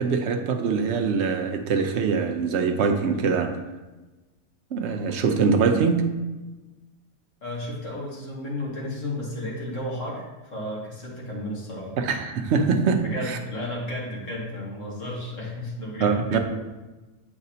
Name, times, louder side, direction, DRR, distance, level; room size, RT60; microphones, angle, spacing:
voice 1, 0.0-3.6 4.7-6.1 12.0-13.4 16.0-16.4, right 5 dB, 60° right, 5 dB, 0.9 m, -23 dB
voice 2, 7.4-11.9 13.0-16.2 16.5-16.6, left 1 dB, 60° left, -4 dB, 2.1 m, -33 dB
7.8 x 5.7 x 2.8 m, 1.2 s
omnidirectional pair, 1.5 m